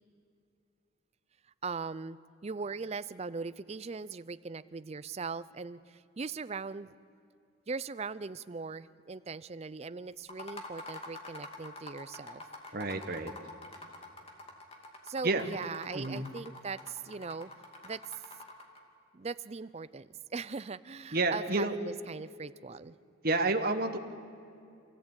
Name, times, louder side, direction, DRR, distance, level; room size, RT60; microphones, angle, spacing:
voice 1, 1.6-6.9 7.7-12.4 15.0-17.5 17.8-18.0 19.1-23.0, right 4 dB, 30° right, 15 dB, 0.4 m, -40 dB
sound 1, 10.2-18.8, left 2 dB, 25° left, 2.3 m, -47 dB
voice 2, 12.7-13.3 15.2-15.6 15.9-16.3 21.1-21.7 23.2-24.0, right 2 dB, 45° right, 7 dB, 1.3 m, -30 dB
27.5 x 15.0 x 8.9 m, 2.6 s
head